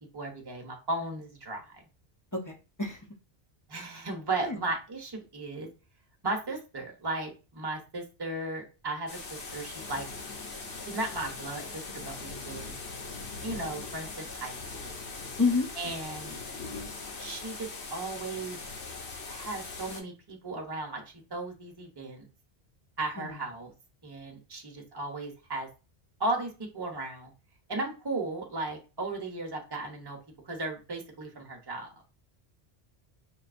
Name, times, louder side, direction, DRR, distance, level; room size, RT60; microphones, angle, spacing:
voice 1, 0.1-1.8 3.7-5.7 6.2-10.1 10.8-12.8 13.4-15.0 15.8-16.4 17.2-18.6 19.3-21.0 21.3-22.3 23.0-23.7 24.0-25.7 26.2-27.3 27.7-30.2 30.4-32.0, right 2 dB, 25° right, 2 dB, 0.8 m, -36 dB
voice 2, 2.3-3.0 4.4-4.6 15.4-15.7 23.2-23.4, left 4 dB, 25° left, 2 dB, 0.4 m, -29 dB
sound 1, 9.1-20.0, left 3 dB, 80° left, 1.1 m, -41 dB
5.4 x 2.6 x 2.5 m, 0.32 s
omnidirectional pair, 1.1 m